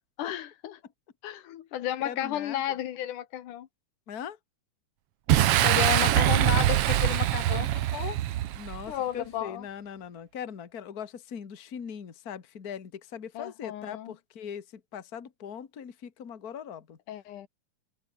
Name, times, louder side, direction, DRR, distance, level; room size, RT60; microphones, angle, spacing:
voice 1, 0.2-0.8 1.2-3.7 5.5-7.7 7.9-8.2 8.9-9.7 13.3-14.1 17.1-17.5, left 11 dB, 80° left, 2.8 m, -33 dB
voice 2, 2.0-2.6 4.1-4.4 8.5-17.0, left 8 dB, 35° left, 2.0 m, -40 dB
Boom, 5.3-8.9, right 13 dB, 65° right, 1.5 m, -23 dB
open air
omnidirectional pair, 3.6 m